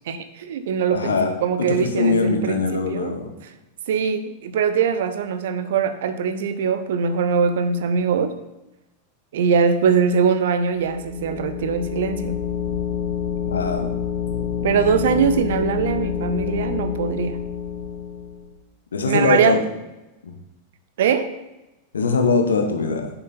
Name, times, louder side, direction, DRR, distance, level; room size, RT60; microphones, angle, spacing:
voice 1, 0.1-3.1 3.9-8.3 9.3-12.4 14.6-17.4 19.1-19.6 21.0-21.3, right 6 dB, 55° right, 11 dB, 0.8 m, -22 dB
voice 2, 0.9-1.3 1.7-3.3 13.5-13.9 18.9-19.6 20.2-20.3 21.9-23.1, left 4 dB, 70° left, 4 dB, 1.3 m, -21 dB
sound 1, 10.8-18.5, left 8 dB, 55° left, 1.5 m, -27 dB
8.9 x 6.9 x 4.3 m, 1.0 s
figure-of-eight pair, 90°, 0 cm